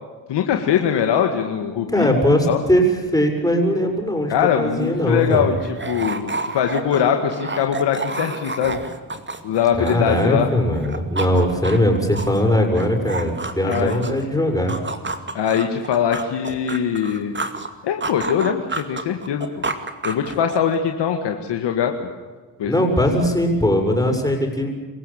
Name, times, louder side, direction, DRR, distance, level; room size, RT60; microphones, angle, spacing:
voice 1, 0.3-2.1 2.5-2.6 4.3-5.6 5.9-8.8 9.4-10.5 13.7-14.0 15.3-17.4 17.8-19.6 20.0-21.9 22.6-22.7, left 8 dB, 85° left, 4 dB, 2.0 m, -21 dB
voice 2, 1.9-5.5 9.8-14.8 22.6-24.7, equal, 10° left, 2 dB, 7.1 m, -20 dB
sound 1, 4.6-4.7 4.9-10.5 10.7-14.3 14.7-17.7 18.0-20.8, right 3 dB, 25° right, 2.5 m, -30 dB
26.5 x 15.5 x 8.9 m, 1.4 s
cardioid pair, 70°, 41 cm